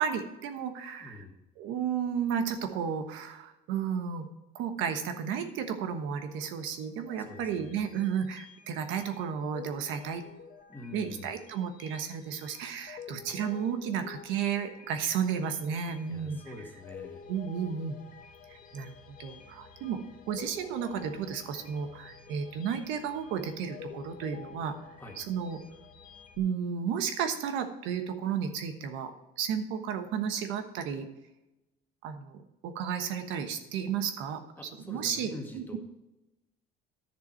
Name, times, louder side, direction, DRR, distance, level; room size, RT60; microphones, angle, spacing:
voice 1, 0.0-1.2 1.6-4.3 4.5-10.2 10.9-16.4 17.3-18.0 18.5-20.0 20.3-24.7 25.2-25.6 26.4-29.1 29.4-31.1 32.0-34.4 34.9-35.8, right 7 dB, 85° right, 7 dB, 1.2 m, -33 dB
voice 2, 1.0-1.4 7.1-7.8 10.7-11.3 16.1-17.3 25.0-25.2 34.6-35.8, left 2 dB, 10° left, 1 dB, 1.8 m, -45 dB
sound 1, 7.0-26.4, left 7 dB, 45° left, 1.6 m, -50 dB
10.5 x 6.9 x 4.5 m, 0.95 s
cardioid pair, 135°, 19 cm